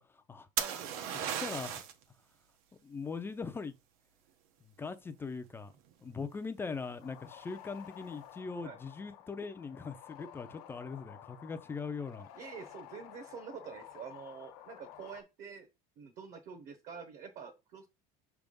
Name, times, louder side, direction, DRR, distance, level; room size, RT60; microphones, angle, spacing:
voice 1, 0.0-0.5 1.1-1.8 2.8-3.7 4.8-5.7 6.0-12.3, left 4 dB, 10° left, 0.4 m, -41 dB
voice 2, 0.6-1.4 8.6-8.8 12.4-15.7 16.0-17.9, right 6 dB, 40° right, 1.0 m, -47 dB
sound 1, 0.6-2.0 5.7-6.1, right 9 dB, 75° right, 1.1 m, -35 dB
sound 2, 7.0-15.2, left 11 dB, 75° left, 1.1 m, -52 dB
6.0 x 3.5 x 5.2 m
cardioid pair, 165°, 19 cm